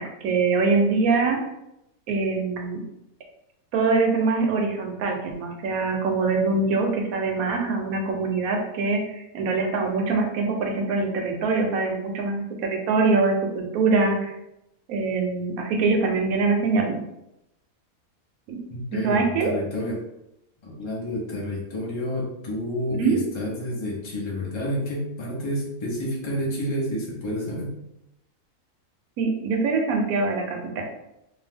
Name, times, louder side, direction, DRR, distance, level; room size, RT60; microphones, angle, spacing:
voice 1, 0.0-1.4 2.1-2.8 3.7-14.3 14.9-17.0 18.5-18.6 19.0-19.5 22.9-23.2 29.2-30.9, right 4 dB, 80° right, 2 dB, 1.0 m, -23 dB
voice 2, 18.7-20.0 20.6-27.8, left 1 dB, 30° left, -3 dB, 0.5 m, -29 dB
2.7 x 2.3 x 3.4 m, 0.86 s
omnidirectional pair, 1.5 m